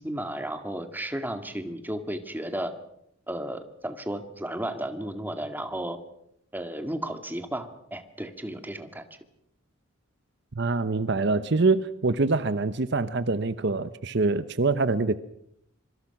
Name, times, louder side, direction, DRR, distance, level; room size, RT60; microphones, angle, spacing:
voice 1, 0.0-2.7 3.3-6.0 6.5-9.0, right 1 dB, 10° right, 8 dB, 1.9 m, -33 dB
voice 2, 10.6-15.2, right 3 dB, 55° right, 14 dB, 0.8 m, -25 dB
25.5 x 24.5 x 5.9 m, 0.76 s
head